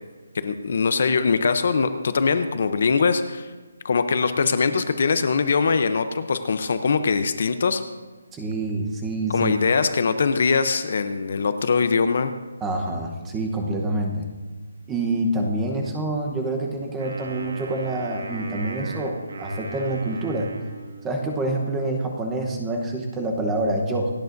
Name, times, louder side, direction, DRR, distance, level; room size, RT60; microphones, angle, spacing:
voice 1, 0.3-3.5 3.8-7.8 9.3-12.3, left 5 dB, 40° left, 10 dB, 0.6 m, -22 dB
voice 2, 8.3-9.5 12.6-14.3 14.9-20.5 21.0-24.1, right 2 dB, 5° right, 1 dB, 0.9 m, -26 dB
Wind instrument woodwind instrument, 17.0-21.4, right 3 dB, 55° right, 1.7 m, -38 dB
27.5 x 9.4 x 2.6 m, 1.3 s
hypercardioid pair, 180°, 0 cm